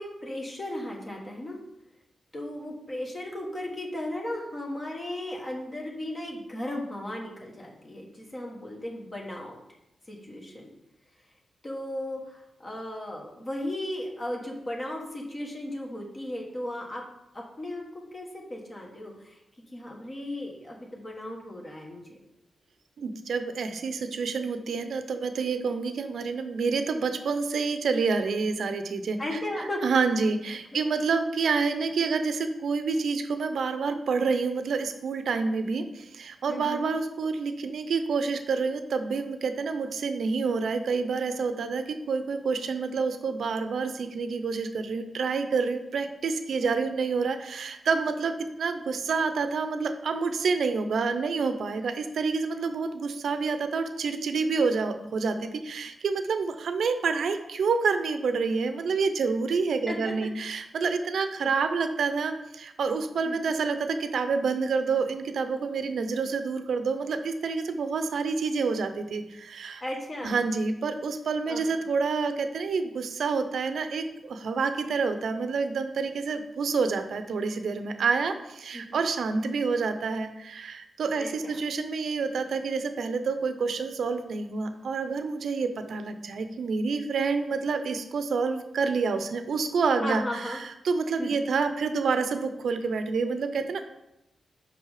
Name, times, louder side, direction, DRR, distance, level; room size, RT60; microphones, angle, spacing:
voice 1, 0.0-1.6 2.3-9.6 10.1-10.7 11.6-17.0 17.3-19.4 19.7-22.2 29.2-29.8 30.7-30.8 36.5-36.9 46.6-46.9 59.9-60.1 63.2-63.6 69.8-70.5 71.5-71.6 78.0-78.1 78.7-79.0 81.1-81.6 90.0-90.6 91.2-91.5, left 1 dB, 30° left, -1 dB, 1.2 m, -36 dB
voice 2, 23.0-29.2 29.8-69.8 70.2-90.6 90.8-93.8, right 4 dB, 75° right, 8 dB, 0.6 m, -28 dB
5.6 x 5.3 x 4.8 m, 0.88 s
wide cardioid pair, 120°, 0 cm